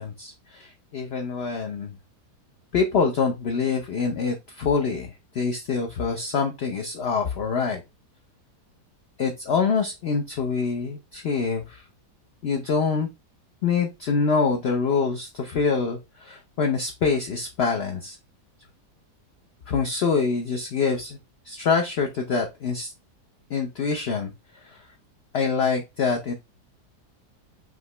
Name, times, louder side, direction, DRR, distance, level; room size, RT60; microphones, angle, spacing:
voice 1, 0.0-2.0 2.7-7.8 9.2-11.8 12.4-13.1 13.6-18.2 19.7-21.2 21.4-22.9 23.5-24.8 25.3-26.3, left 5 dB, 65° left, 3 dB, 0.6 m, -25 dB
5.0 x 2.9 x 3.2 m, 0.24 s
omnidirectional pair, 1.8 m